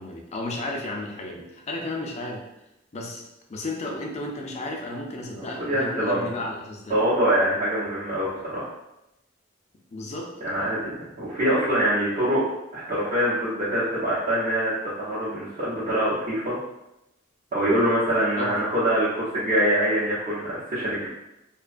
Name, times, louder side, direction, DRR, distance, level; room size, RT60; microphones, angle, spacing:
voice 1, 0.0-2.4 2.9-3.2 3.5-7.0 9.9-10.3 18.4-18.5, left 2 dB, 35° left, 0 dB, 0.4 m, -33 dB
voice 2, 5.4-6.3 6.9-8.7 10.4-12.4 12.7-16.6 17.5-21.1, right 1 dB, 40° right, -11 dB, 0.8 m, -24 dB
2.8 x 2.2 x 2.4 m, 0.88 s
head